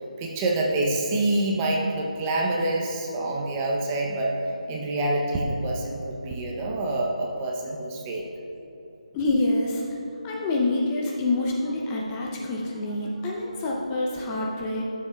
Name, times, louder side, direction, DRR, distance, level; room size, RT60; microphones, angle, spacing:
voice 1, 0.2-4.3 4.7-8.2, right 2 dB, 20° right, -2 dB, 0.7 m, -26 dB
voice 2, 9.1-9.8 10.2-14.8, left 2 dB, 15° left, -3 dB, 0.7 m, -26 dB
12.5 x 7.1 x 2.3 m, 3.0 s
figure-of-eight pair, 155°, 4 cm